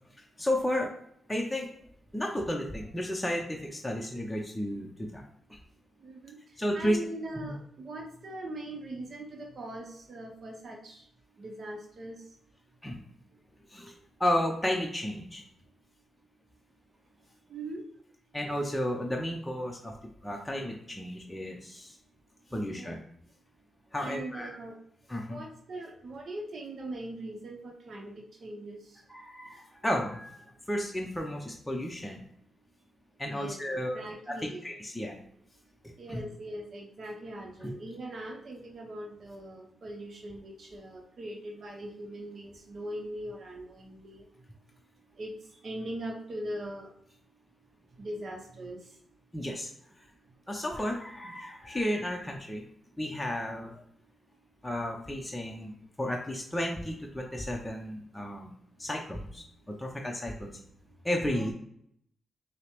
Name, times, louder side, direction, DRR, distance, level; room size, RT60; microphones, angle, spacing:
voice 1, 0.4-0.9 1.3-1.7 2.1-5.2 5.5-5.6 6.6-7.0 7.4-7.5 12.8-13.0 13.7-13.9 14.2-15.4 18.3-19.9 20.2-21.9 22.5-23.0 23.9-24.5 25.1-25.4 29.1-32.2 33.2-35.1 36.1-36.2 37.6-37.7 49.3-49.7 50.5-52.6 53.0-53.7 54.6-55.7 56.0-58.5 58.8-60.5 61.0-61.5, left 1 dB, 15° left, 0 dB, 0.6 m, -33 dB
voice 2, 6.0-6.4 6.7-11.0 11.4-12.2 17.5-17.8 22.5-22.9 23.9-24.8 25.2-28.1 28.4-29.0 33.3-34.7 36.0-44.3 45.2-45.3 45.6-46.9 48.0-48.8 61.3-61.5, right 1 dB, 60° right, 2 dB, 0.7 m, -41 dB
5.4 x 2.0 x 3.0 m, 0.69 s
cardioid pair, 55°, 0 cm